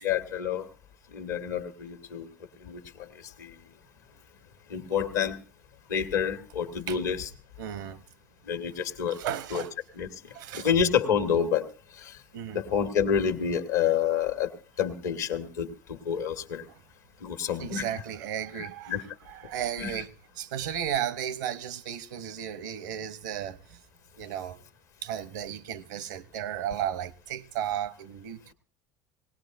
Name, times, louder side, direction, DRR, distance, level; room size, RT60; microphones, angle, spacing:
voice 1, 0.0-0.7 1.1-2.3 2.6-2.8 3.4-3.5 4.7-5.4 5.9-7.3 8.5-9.2 9.5-9.6 10.0-10.1 10.5-11.6 12.0-12.1 12.5-14.5 14.8-16.6 17.2-17.8 18.9-19.0 19.8-19.9, left 7 dB, 80° left, 1.4 m, -28 dB
voice 2, 7.6-8.0 9.1-9.7 10.3-10.7 12.3-12.6 17.6-20.1 20.4-23.8 24.2-24.6 25.0-28.5, right 10 dB, 75° right, 0.8 m, -34 dB
19.5 x 18.0 x 2.6 m
hypercardioid pair, 70°, 10 cm